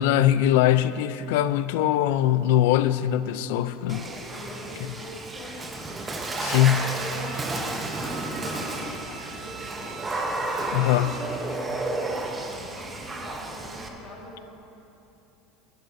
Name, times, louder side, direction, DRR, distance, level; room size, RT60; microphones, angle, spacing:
voice 1, 0.0-4.0 6.4-6.8 10.7-11.1, left 12 dB, 70° left, 13 dB, 0.4 m, -21 dB
voice 2, 3.7-5.7 6.2-9.9 10.8-14.4, left 1 dB, 30° left, -3 dB, 2.1 m, -43 dB
Water / Splash splatter, 3.9-13.9, right 2 dB, 15° right, 0.8 m, -32 dB
Bowed string instrument, 6.2-11.4 11.7-11.8, right 5 dB, 55° right, 1.5 m, -43 dB
16.5 x 11.5 x 2.6 m, 2.9 s
cardioid pair, 165°, 0 cm